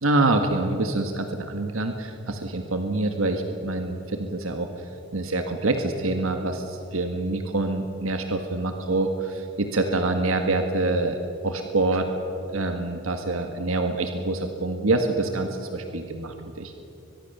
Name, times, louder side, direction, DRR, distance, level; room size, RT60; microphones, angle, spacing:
voice 1, 0.0-4.7 5.1-12.1 12.5-16.7, right 2 dB, 90° right, 5 dB, 1.7 m, -26 dB
24.0 x 21.0 x 6.9 m, 2.9 s
head